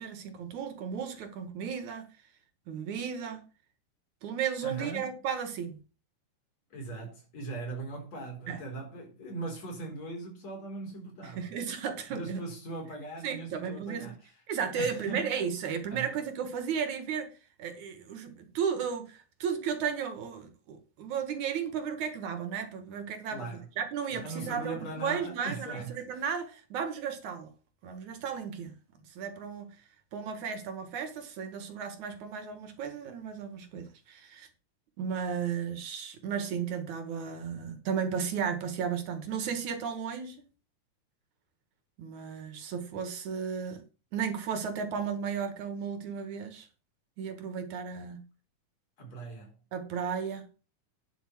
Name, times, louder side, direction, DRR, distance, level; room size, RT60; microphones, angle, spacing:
voice 1, 0.0-2.1 2.7-3.4 4.2-5.8 8.5-8.6 11.4-12.4 13.2-14.1 14.5-17.3 17.6-23.5 23.8-27.5 27.8-28.7 29.2-29.8 30.1-34.5 35.0-40.4 42.0-43.8 44.1-46.7 47.2-48.2 49.7-50.5, right 7 dB, 70° right, 2.9 m, -34 dB
voice 2, 4.6-5.1 6.7-11.5 12.1-14.3 14.7-15.3 15.9-16.2 23.3-23.7 24.1-26.2 49.0-49.6, right 3 dB, 55° left, 5.4 m, -40 dB
10.5 x 5.9 x 6.0 m
omnidirectional pair, 3.6 m